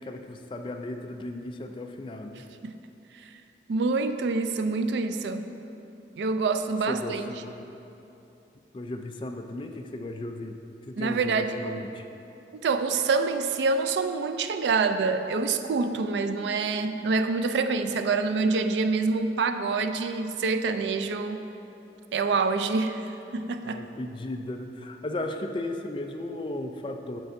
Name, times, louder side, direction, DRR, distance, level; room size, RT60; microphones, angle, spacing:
voice 1, 0.0-2.4 6.9-7.7 8.7-10.6 10.8-12.1 23.6-27.2, left 1 dB, 30° left, 5 dB, 0.3 m, -35 dB
voice 2, 3.7-5.5 6.2-7.2 11.0-11.7 12.5-21.4 22.1-23.8, right 4 dB, 80° right, 9 dB, 0.4 m, -26 dB
9.1 x 6.9 x 2.6 m, 2.9 s
head